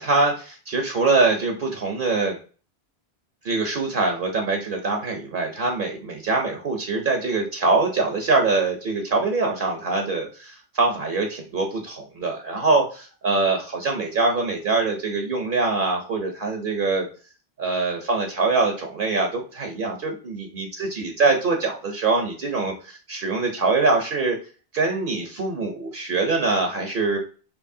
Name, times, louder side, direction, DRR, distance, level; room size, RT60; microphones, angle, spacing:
voice 1, 0.0-2.4 3.4-17.1 17.6-24.4 24.7-27.2, right 3 dB, 60° right, 3 dB, 0.8 m, -23 dB
4.6 x 2.9 x 2.6 m, 0.38 s
omnidirectional pair, 1.1 m